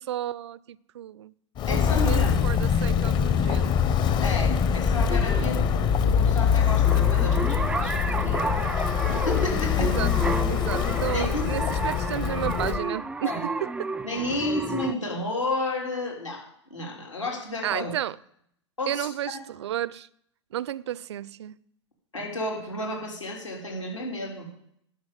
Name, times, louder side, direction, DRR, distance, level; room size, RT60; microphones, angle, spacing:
voice 1, 0.0-1.3 1.9-3.8 9.8-10.1 10.5-13.9 17.6-18.2 18.9-20.1 20.5-21.6, right 12 dB, 65° right, 0.4 m, -32 dB
Walk footsteps, 1.6-12.8, left 8 dB, 30° left, 0.7 m, -24 dB
voice 2, 1.7-2.4 4.2-8.8 9.1-9.9 11.1-11.7 13.2-13.4 14.0-16.4 16.7-17.9 18.8-19.4 22.1-24.5, left 2 dB, 90° left, 3.6 m, -32 dB
making love to my guitar, 5.1-14.9, right 3 dB, 5° right, 0.4 m, -32 dB
11.0 x 6.2 x 7.5 m
figure-of-eight pair, 100°, 15 cm